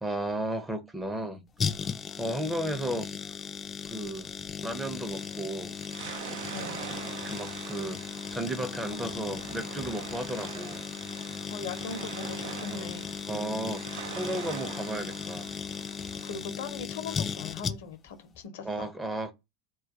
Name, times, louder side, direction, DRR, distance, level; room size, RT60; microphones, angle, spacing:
voice 1, 0.0-1.4 2.2-3.1 3.9-4.3 4.6-5.8 7.1-8.0 8.3-10.8 12.7-12.9 13.3-15.5 18.6-19.3, right 1 dB, 15° right, 0.6 m, -34 dB
sound 1, 1.6-18.1 18.3-18.4, left 6 dB, 30° left, 0.3 m, -37 dB
sound 2, 4.9-16.4, right 9 dB, 75° right, 0.3 m, -43 dB
voice 2, 11.5-13.1 16.2-18.9, left 5 dB, 80° left, 0.6 m, -40 dB
2.2 x 2.2 x 2.8 m
hypercardioid pair, 100°, 0 cm